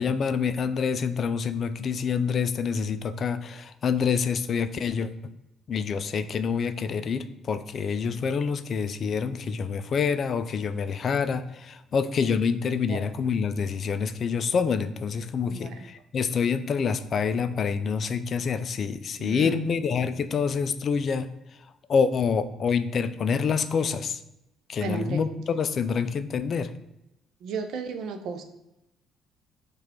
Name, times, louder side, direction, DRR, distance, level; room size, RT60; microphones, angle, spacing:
voice 1, 0.0-5.3 5.7-21.3 21.9-24.2 24.7-26.7, left 6 dB, 45° left, 11 dB, 0.3 m, -27 dB
voice 2, 15.4-15.9 19.2-19.7 24.8-25.2 27.4-28.4, right 5 dB, 60° right, 7 dB, 0.5 m, -34 dB
4.6 x 2.4 x 4.4 m, 0.89 s
figure-of-eight pair, 45°, 0 cm